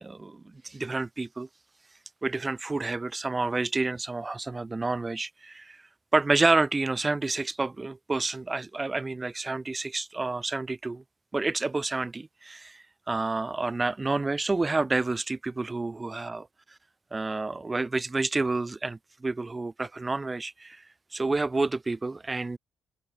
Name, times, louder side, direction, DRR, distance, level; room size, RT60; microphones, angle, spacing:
voice 1, 0.0-1.5 2.2-5.8 6.1-11.0 11.3-16.5 17.1-20.8 21.1-22.6, right 3 dB, 20° right, 0.4 m, -29 dB
open air
cardioid pair, 90°, 0 cm